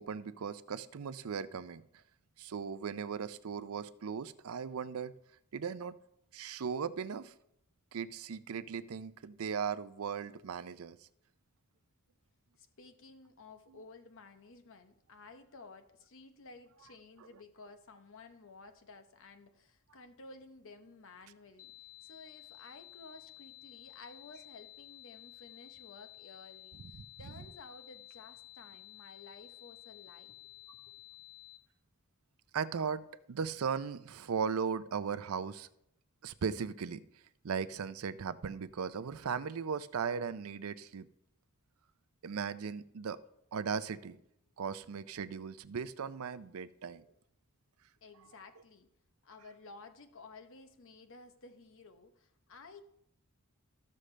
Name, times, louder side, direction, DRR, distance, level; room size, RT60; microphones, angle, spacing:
voice 1, 0.0-1.8 2.4-5.1 5.5-6.0 6.3-7.3 7.9-11.0 26.8-27.3 32.5-35.7 36.2-37.0 37.4-41.1 42.2-43.2 43.5-44.2 44.6-47.1, right 6 dB, 70° right, 14 dB, 0.5 m, -37 dB
voice 2, 12.6-21.7 22.0-30.4 30.7-31.0 48.0-48.9 49.2-52.8, left 3 dB, 65° left, 8 dB, 0.9 m, -54 dB
sound 1, 21.6-31.6, left 17 dB, 40° left, 0.5 m, -54 dB
14.0 x 6.4 x 3.3 m, 0.77 s
head